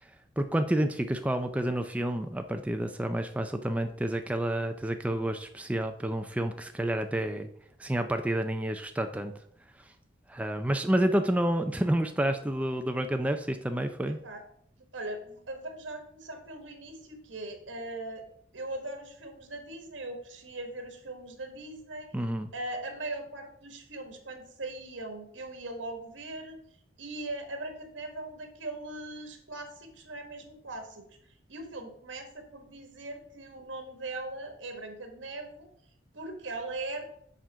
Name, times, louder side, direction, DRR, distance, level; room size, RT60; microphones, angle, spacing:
voice 1, 0.4-7.5 7.8-9.3 10.3-14.2 22.1-22.5, right 1 dB, 5° right, 6 dB, 0.4 m, -29 dB
voice 2, 14.9-18.2 18.5-22.1 22.5-26.6 27.0-31.0 31.5-35.7 36.1-37.0, right 2 dB, 80° right, 5 dB, 1.4 m, -40 dB
7.5 x 3.8 x 5.5 m, 0.67 s
head